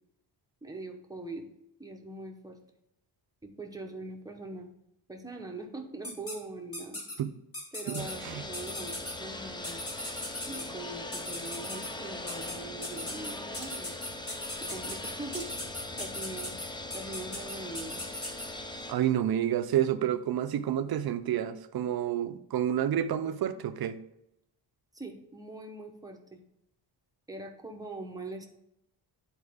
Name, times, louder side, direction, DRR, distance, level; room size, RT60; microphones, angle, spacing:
voice 1, 0.6-1.5 1.8-2.6 3.4-4.7 5.1-7.1 7.7-9.8 10.5-13.9 14.6-15.5 16.0-16.5 16.9-18.0 24.9-26.4 27.3-28.5, right 2 dB, 10° right, 0.8 m, -42 dB
sound 1, 6.0-6.3 6.7-7.1 7.5-8.1 8.5-9.1 9.6-10.6 11.1-11.9 12.3-12.5 12.8-18.5, left 1 dB, 30° left, 1.9 m, -38 dB
voice 2, 7.9-8.4 18.9-24.0, right 10 dB, 55° right, 0.6 m, -29 dB
sound 2, 8.0-18.9, left 2 dB, 10° left, 0.4 m, -40 dB
9.9 x 4.3 x 3.6 m
wide cardioid pair, 160°, 44 cm